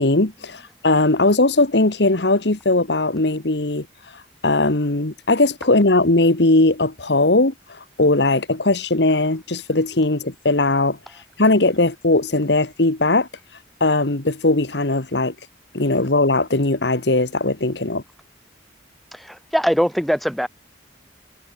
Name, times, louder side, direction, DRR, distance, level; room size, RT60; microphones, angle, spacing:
voice 1, 0.0-3.9 4.4-11.0 11.4-13.3 13.8-15.3 15.7-18.0, left 2 dB, 65° left, 1.8 m, -19 dB
voice 2, 19.1-20.5, equal, ahead, 4.1 m, -21 dB
head